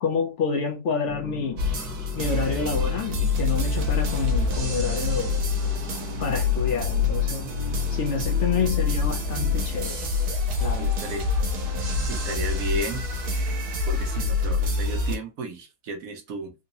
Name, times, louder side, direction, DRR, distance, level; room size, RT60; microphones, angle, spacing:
voice 1, 0.0-1.6 2.1-5.4 6.2-7.5 7.9-10.0 10.6-10.9, left 5 dB, 60° left, 0.9 m, -28 dB
sound 1, 1.0-9.6, equal, 15° left, 0.8 m, -41 dB
sound 2, 1.6-15.2, left 4 dB, 85° right, 1.5 m, -26 dB
voice 2, 10.8-11.3 12.0-13.0 13.9-16.5, right 2 dB, 70° right, 1.2 m, -33 dB
3.8 x 2.8 x 2.6 m
omnidirectional pair, 1.6 m